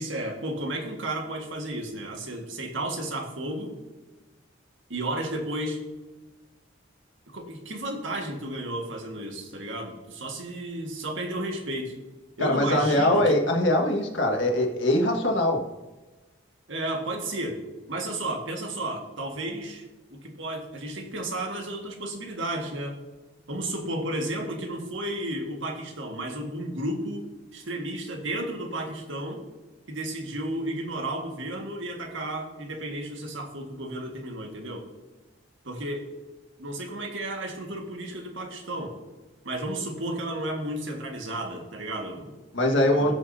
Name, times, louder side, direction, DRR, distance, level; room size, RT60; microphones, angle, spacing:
voice 1, 0.0-3.7 4.9-5.8 7.3-11.9 12.4-13.4 16.7-19.9 20.1-23.0 23.5-27.3 27.5-29.4 29.9-34.9 35.6-36.1 36.6-39.0 39.4-42.4 43.1-43.2, right 1 dB, 80° right, 2 dB, 1.8 m, -33 dB
voice 2, 12.4-15.6 42.5-43.1, left 1 dB, 80° left, 1 dB, 1.7 m, -22 dB
18.0 x 6.3 x 2.8 m, 1.2 s
head